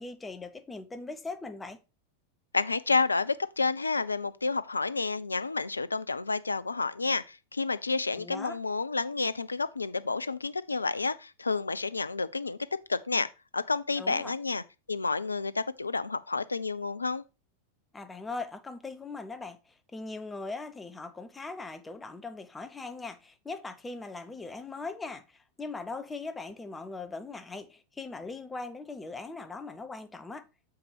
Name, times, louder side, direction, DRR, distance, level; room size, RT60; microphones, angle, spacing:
voice 1, 0.0-1.8 8.2-8.6 14.0-14.3 17.9-30.5, left 3 dB, 10° left, 0.8 m, -40 dB
voice 2, 2.5-12.6 12.9-13.3 13.5-14.6 14.9-17.2, left 4 dB, 80° left, 0.5 m, -30 dB
7.3 x 4.8 x 4.7 m
figure-of-eight pair, 90°, 0 cm